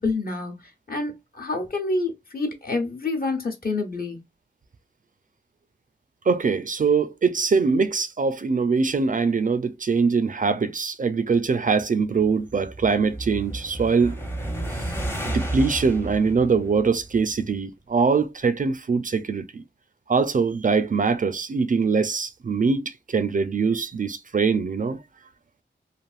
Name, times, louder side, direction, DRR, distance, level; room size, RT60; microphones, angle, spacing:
voice 1, 0.0-4.2, left 3 dB, 50° left, 0.9 m, -28 dB
voice 2, 6.3-14.2 15.3-19.6 20.1-25.0, right 5 dB, 45° right, 0.4 m, -23 dB
sound 1, 12.0-17.5, right 1 dB, 10° left, 0.7 m, -32 dB
3.3 x 2.5 x 2.3 m
wide cardioid pair, 80°, 19 cm